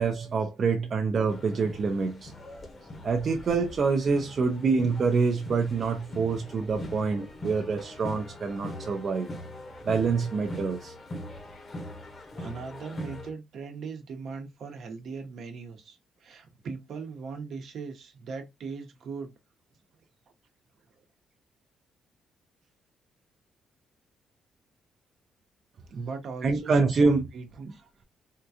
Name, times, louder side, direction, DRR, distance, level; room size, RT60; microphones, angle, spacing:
voice 1, 0.0-2.3 3.0-9.3 9.8-10.9 26.4-27.2, right 4 dB, 50° right, 0.5 m, -26 dB
sound 1, 1.3-13.3, left 1 dB, 40° left, 0.9 m, -42 dB
voice 2, 12.4-19.3 25.9-27.7, right 5 dB, 65° right, 0.9 m, -39 dB
3.7 x 2.3 x 2.7 m
cardioid pair, 90°, 0 cm